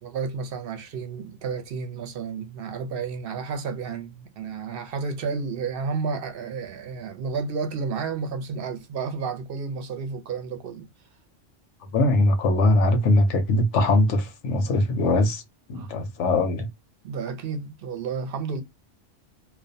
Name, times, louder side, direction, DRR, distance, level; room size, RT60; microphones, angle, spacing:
voice 1, 0.0-10.9 15.7-15.9 17.0-18.6, right 5 dB, 60° right, 0.7 m, -31 dB
voice 2, 11.9-15.4 15.7-16.7, left 2 dB, 75° left, 0.9 m, -21 dB
2.4 x 2.1 x 2.5 m
omnidirectional pair, 1.3 m